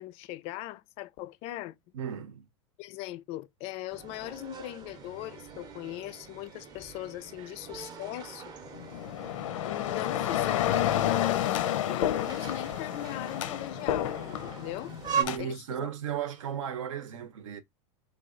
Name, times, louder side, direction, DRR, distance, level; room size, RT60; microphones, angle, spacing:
voice 1, 0.0-1.7 2.8-8.4 9.6-11.5 11.9-15.0 15.4-15.9, left 15 dB, 40° left, 0.4 m, -39 dB
voice 2, 1.9-2.4 7.4-7.5 15.1-17.6, right 9 dB, 90° right, 0.8 m, -35 dB
sound 1, 3.9-15.2, right 7 dB, 25° right, 0.6 m, -40 dB
sound 2, 8.7-15.4, left 11 dB, 90° left, 0.6 m, -30 dB
3.3 x 2.3 x 3.7 m
supercardioid pair, 140°, 16 cm